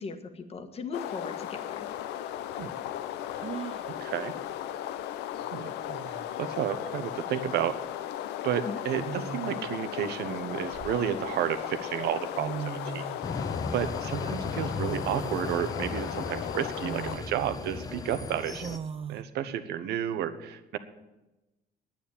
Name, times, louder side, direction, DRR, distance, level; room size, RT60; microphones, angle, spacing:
voice 1, 0.0-1.9 8.7-8.8, left 5 dB, 35° left, 8 dB, 1.5 m, -38 dB
sound 1, 0.9-17.2, left 11 dB, 90° left, 0.7 m, -36 dB
sound 2, 1.8-1.9 3.4-3.9 5.4-5.5 5.9-6.4 7.7-7.9 9.0-9.8 10.4-11.4 12.1-12.2 12.4-13.2 14.9-15.5 16.0-16.1 16.8-17.3 18.6-19.2, right 7 dB, 35° right, 0.5 m, -39 dB
voice 2, 3.8-4.3 5.5-5.7 6.1-7.8 8.4-13.1 13.7-18.7 19.1-20.8, right 10 dB, 80° right, 10 dB, 1.1 m, -32 dB
sound 3, 13.2-18.8, left 3 dB, 20° left, 1.0 m, -36 dB
9.9 x 9.2 x 8.7 m, 1.0 s
cardioid pair, 110°, 17 cm